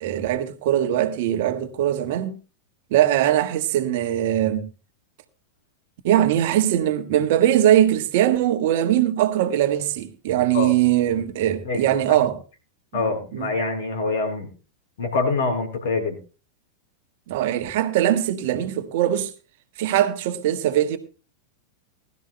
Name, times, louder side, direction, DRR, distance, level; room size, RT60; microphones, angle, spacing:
voice 1, 0.0-2.3 2.9-4.7 6.0-12.4 12.9-13.0 13.3-13.5 17.3-19.3 19.8-21.0, right 12 dB, 50° right, 1.4 m, -21 dB
voice 2, 12.9-14.5 15.0-16.2, left 3 dB, 60° left, 4.3 m, -25 dB
20.5 x 12.5 x 2.2 m
figure-of-eight pair, 90°, 0 cm